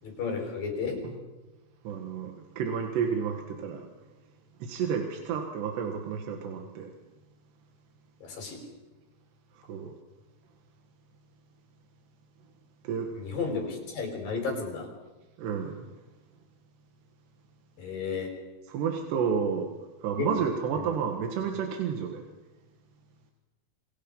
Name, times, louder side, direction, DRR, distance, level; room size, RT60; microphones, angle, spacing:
voice 1, 0.0-1.0 8.2-8.6 13.1-14.9 17.8-18.3 20.2-20.3 20.8-20.9, left 5 dB, 55° left, 2 dB, 6.4 m, -33 dB
voice 2, 1.9-3.9 4.6-6.9 9.7-9.9 12.8-13.1 15.4-15.9 18.7-19.7 20.0-22.2, right 7 dB, 85° right, 3 dB, 3.8 m, -31 dB
28.0 x 23.0 x 5.5 m, 1.2 s
omnidirectional pair, 4.7 m